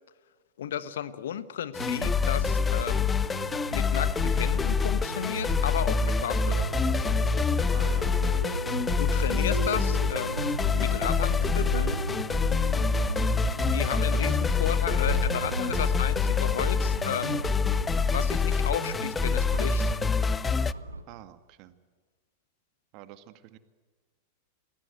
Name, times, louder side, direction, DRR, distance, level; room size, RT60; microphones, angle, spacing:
voice 1, 0.6-3.1 3.7-6.7 9.0-10.5 10.8-12.0 13.7-17.5 18.1-20.0, left 9 dB, 60° left, 15 dB, 1.3 m, -33 dB
sound 1, 1.7-20.7, left 5 dB, 15° left, 0.7 m, -26 dB
sound 2, 1.8-21.0, right 2 dB, 80° right, 2.1 m, -35 dB
voice 2, 7.7-8.2 12.9-13.3 21.1-21.8 22.9-23.6, right 14 dB, 40° right, 12 dB, 1.9 m, -47 dB
29.0 x 20.5 x 8.1 m, 1.4 s
figure-of-eight pair, 90°, 0 cm